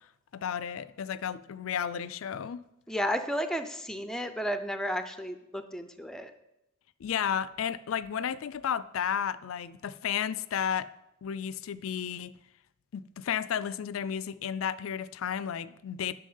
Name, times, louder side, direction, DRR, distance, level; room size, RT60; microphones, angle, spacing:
voice 1, 0.3-2.6 7.0-10.9 11.2-12.3 12.9-16.1, left 8 dB, 85° left, 0.4 m, -33 dB
voice 2, 2.9-6.3, equal, 5° left, 0.5 m, -32 dB
9.9 x 5.8 x 5.5 m
head